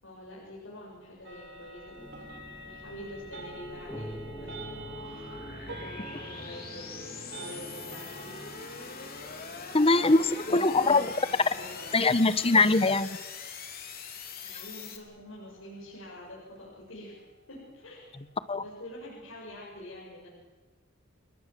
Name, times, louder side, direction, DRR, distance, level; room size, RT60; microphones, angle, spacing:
voice 1, 0.0-4.7 4.9-8.4 9.9-11.9 14.4-17.2 17.5-18.1 18.6-20.3, left 1 dB, 75° left, -6 dB, 7.4 m, -46 dB
sound 1, 1.2-18.5, right 1 dB, 60° right, 4.4 m, -49 dB
sound 2, 1.4-15.0, left 5 dB, 50° left, 3.6 m, -43 dB
sound 3, 2.0-12.8, equal, 10° left, 2.7 m, -48 dB
voice 2, 9.7-11.1 11.9-13.2 18.5-18.6, left 3 dB, 30° left, 14 dB, 1.1 m, -22 dB
29.5 x 20.0 x 7.6 m, 1.4 s
head